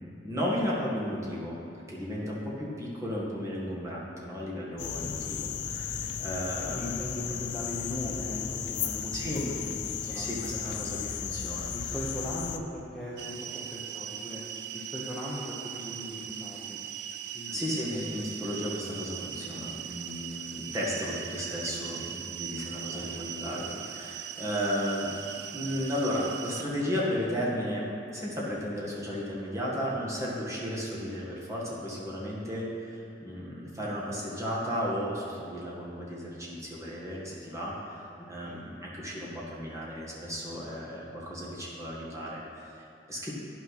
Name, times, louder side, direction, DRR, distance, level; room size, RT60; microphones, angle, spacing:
voice 1, 0.0-1.6 1.9-7.1 9.1-9.4 10.0-11.7 17.5-25.1 25.5-27.8 28.1-38.0 38.3-43.3, equal, 15° right, -6 dB, 1.9 m, -34 dB
sound 1, 4.8-12.6, left 7 dB, 75° left, 0.5 m, -35 dB
voice 2, 6.7-9.4 9.7-10.6 11.7-14.4 14.7-16.8 17.3-17.6 17.9-18.1 22.9-23.1 23.5-23.7 38.4-38.6, equal, 5° left, -8 dB, 1.0 m, -39 dB
sound 2, 13.2-26.6, right 10 dB, 65° right, 0.4 m, -40 dB
10.0 x 6.1 x 5.9 m, 2.7 s
head